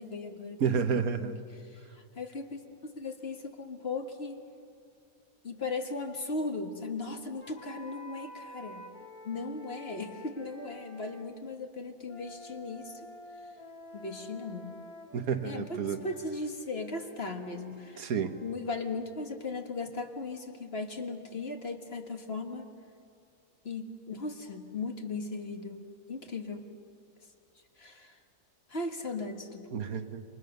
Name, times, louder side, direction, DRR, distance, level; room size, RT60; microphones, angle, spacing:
voice 1, 0.0-1.4 1.6-4.4 5.4-8.9 9.2-12.9 13.9-14.8 15.4-18.1 18.4-22.6 23.6-26.7 27.8-28.2 28.7-29.9, left 3 dB, 45° left, 4 dB, 1.8 m, -37 dB
voice 2, 0.6-1.3 15.1-16.0 18.0-18.4 29.7-30.2, right 6 dB, 75° right, 8 dB, 1.6 m, -30 dB
sound 1, 7.4-11.3 12.0-18.6, left 1 dB, 70° left, 2.6 m, -50 dB
28.5 x 25.5 x 6.7 m, 2.3 s
omnidirectional pair, 1.6 m